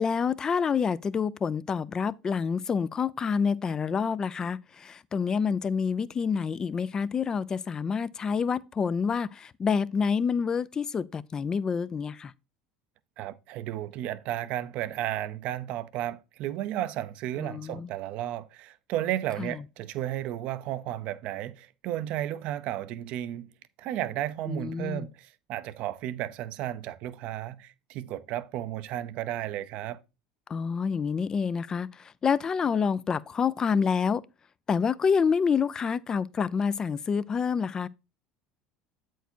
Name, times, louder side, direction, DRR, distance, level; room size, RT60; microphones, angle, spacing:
voice 1, 0.0-12.3 17.4-17.9 19.4-19.5 24.5-25.1 30.5-34.2 34.7-37.9, left 6 dB, 30° left, 0.5 m, -28 dB
voice 2, 13.2-23.5 23.8-30.0, right 13 dB, 60° right, 0.7 m, -33 dB
8.1 x 4.6 x 4.4 m
supercardioid pair, 95°, 2 cm